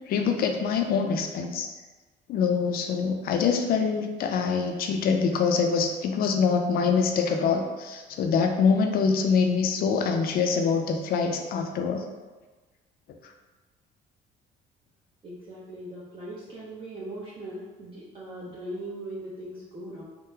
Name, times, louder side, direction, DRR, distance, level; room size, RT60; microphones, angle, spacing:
voice 1, 0.1-1.7 2.3-12.0, left 5 dB, 60° left, 4 dB, 0.4 m, -24 dB
voice 2, 15.2-20.0, right 1 dB, 30° right, -8 dB, 0.6 m, -39 dB
3.6 x 2.1 x 2.7 m, 1.2 s
cardioid pair, 110°, 17 cm